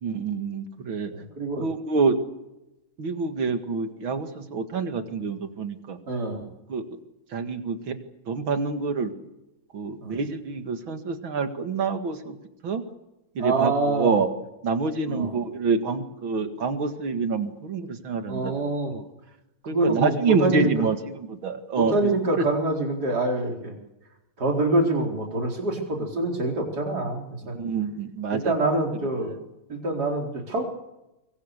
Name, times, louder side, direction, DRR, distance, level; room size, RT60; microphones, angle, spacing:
voice 1, 0.0-1.1 1.6-2.2 3.0-6.0 6.7-6.8 7.3-8.0 8.3-9.1 9.7-12.4 12.6-12.8 13.4-14.3 14.6-18.5 18.9-19.0 19.7-22.5 27.5-28.8, right 4 dB, 75° right, 8 dB, 2.8 m, -27 dB
voice 2, 1.1-1.7 6.1-6.4 10.0-10.2 13.4-14.1 15.1-15.3 18.3-18.9 19.7-20.7 21.8-23.8 24.4-27.5 28.3-29.4 29.7-30.6, right 2 dB, 50° right, 1 dB, 4.8 m, -25 dB
24.5 x 24.0 x 6.7 m, 0.95 s
omnidirectional pair, 2.2 m